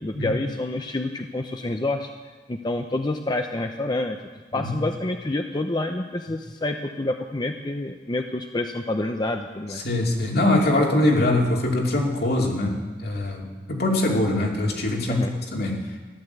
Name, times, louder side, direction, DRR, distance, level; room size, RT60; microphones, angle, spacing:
voice 1, 0.0-2.1 2.5-4.2 4.5-9.8 15.1-15.3, left 2 dB, 25° left, 5 dB, 0.7 m, -28 dB
voice 2, 9.7-15.3 15.5-15.8, left 1 dB, 65° left, 0 dB, 2.7 m, -23 dB
14.5 x 11.5 x 8.0 m, 1.3 s
head